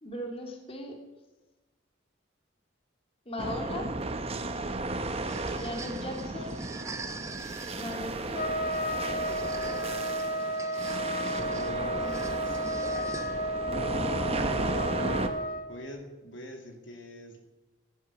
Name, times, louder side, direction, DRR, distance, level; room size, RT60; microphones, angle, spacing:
voice 1, 0.0-1.0 3.3-3.9 5.5-6.6 7.8-8.5, left 1 dB, 30° left, 2 dB, 2.4 m, -38 dB
sound 1, 3.4-15.3, right 2 dB, 30° right, 1.0 m, -34 dB
sound 2, 5.3-13.7, right 3 dB, 15° right, 0.7 m, -45 dB
Trumpet, 8.3-15.7, equal, 45° left, 1.1 m, -32 dB
voice 2, 11.3-12.9 14.5-15.2 15.7-17.4, left 1 dB, 75° left, 3 dB, 2.4 m, -44 dB
17.0 x 10.5 x 6.0 m, 1.1 s
head